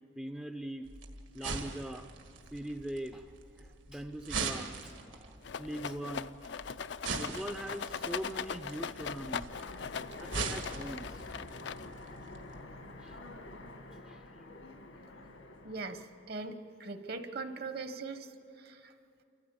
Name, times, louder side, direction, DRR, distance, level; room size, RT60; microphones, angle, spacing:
voice 1, 0.2-0.9 1.3-2.1 2.5-5.3 5.6-6.4 7.2-9.5 10.2-11.2 13.0-13.2 14.1-14.3, right 1 dB, 5° right, 5 dB, 0.4 m, -41 dB
sound 1, 0.9-12.6, right 4 dB, 75° right, 1.9 m, -42 dB
Rattle, 5.4-12.1, left 6 dB, 60° left, 0.4 m, -40 dB
Train, 9.5-16.5, left 2 dB, 80° left, 1.5 m, -48 dB
voice 2, 15.6-18.9, right 3 dB, 50° right, 9 dB, 1.1 m, -41 dB
28.0 x 14.5 x 8.6 m, 2.6 s
head